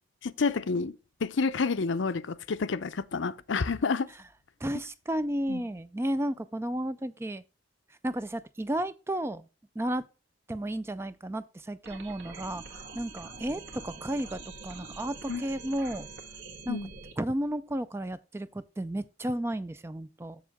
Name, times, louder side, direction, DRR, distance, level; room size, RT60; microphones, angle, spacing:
voice 1, 0.2-0.9 1.2-4.1 5.5-5.6 15.3-15.4 16.7-16.9, left 4 dB, 70° left, 0.6 m, -29 dB
voice 2, 4.6-7.4 8.0-9.4 9.8-10.0 10.5-12.6 13.0-16.1 16.7-16.8 17.2-20.4, right 1 dB, 15° right, 0.3 m, -33 dB
sound 1, 11.8-17.1, right 4 dB, 60° right, 1.6 m, -45 dB
7.2 x 7.2 x 3.5 m
head